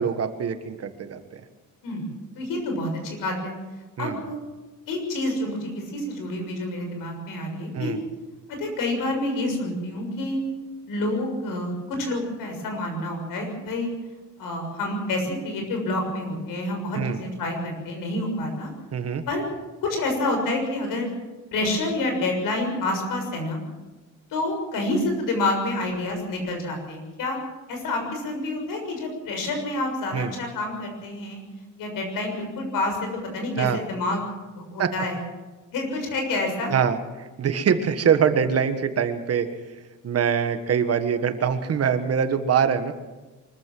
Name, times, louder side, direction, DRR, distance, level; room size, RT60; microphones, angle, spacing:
voice 1, 0.0-1.4 4.0-4.2 7.7-8.0 16.9-17.2 18.9-19.2 30.1-30.3 33.6-33.8 34.8-34.9 36.7-39.5 40.0-42.9, right 7 dB, 45° right, 9 dB, 1.6 m, -24 dB
voice 2, 2.3-3.5 4.0-4.4 4.9-7.9 8.6-10.4 10.9-13.9 14.4-18.7 19.3-19.4 19.8-21.1 21.5-23.6 24.3-27.4 27.7-31.4 31.8-34.2 34.6-35.2 35.7-36.7, left 2 dB, 85° left, 3 dB, 6.8 m, -28 dB
24.0 x 14.5 x 7.7 m, 1.2 s
cardioid pair, 145°, 33 cm